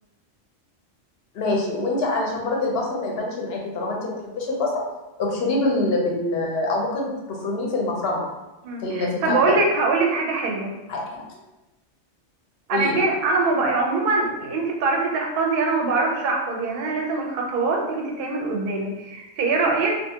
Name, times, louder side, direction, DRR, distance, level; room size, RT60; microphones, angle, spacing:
voice 1, 1.3-4.7 5.2-8.3 8.8-9.6 10.9-11.0 12.7-13.0, left 2 dB, 65° left, -1 dB, 0.7 m, -25 dB
voice 2, 8.6-10.7 12.7-20.0, right 3 dB, 60° right, 0 dB, 0.6 m, -23 dB
2.4 x 2.3 x 2.7 m, 1.0 s
omnidirectional pair, 1.2 m